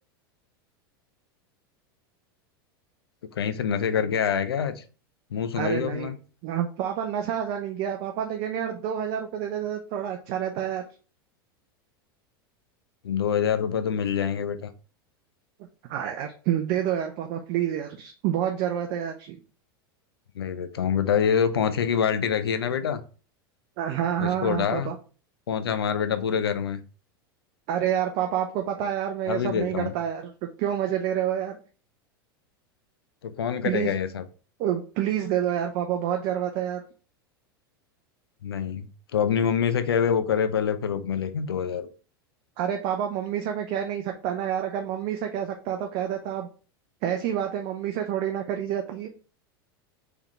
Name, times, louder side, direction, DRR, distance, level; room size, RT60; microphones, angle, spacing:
voice 1, 3.3-4.8 5.3-6.2 13.0-14.7 20.4-23.0 24.2-24.9 25.5-26.8 29.3-29.9 33.2-34.2 38.4-41.9, left 7 dB, 90° left, 0.5 m, -26 dB
voice 2, 5.6-6.1 6.4-10.8 15.8-19.4 23.8-25.0 27.7-30.3 30.6-31.6 33.6-33.9 34.6-36.8 42.6-46.5 47.0-49.1, right 10 dB, 55° right, 0.6 m, -28 dB
3.7 x 3.5 x 3.1 m
hypercardioid pair, 100°, 12 cm